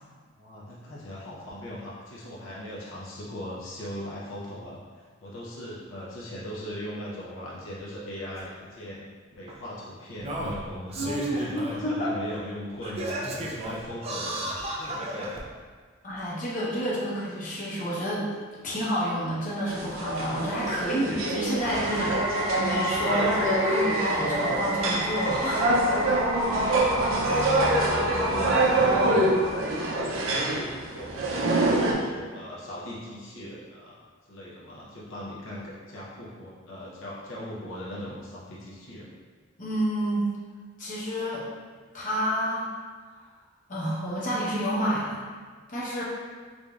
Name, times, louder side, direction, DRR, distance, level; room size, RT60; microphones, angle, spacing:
voice 1, 0.4-14.5 14.9-15.5 26.7-29.5 30.0-34.0 34.3-39.1, left 1 dB, 80° left, -6 dB, 0.7 m, -39 dB
Singing, 8.4-8.5 9.5-9.6 10.2-11.8 12.3-12.4 12.8-15.4 16.2-16.3, right 1 dB, 30° right, 0.4 m, -34 dB
voice 2, 11.0-12.1 16.0-18.3 18.6-22.2 22.6-25.8 26.7-26.9 39.6-40.3 40.8-41.4 41.9-42.7 43.7-45.3 45.7-46.0, equal, 40° left, -7 dB, 0.9 m, -29 dB
sound 1, 19.7-31.9, right 1 dB, 90° right, 0.5 m, -26 dB
sound 2, 21.6-30.0, equal, 10° right, 0.9 m, -31 dB
4.9 x 2.6 x 2.4 m, 1.5 s
head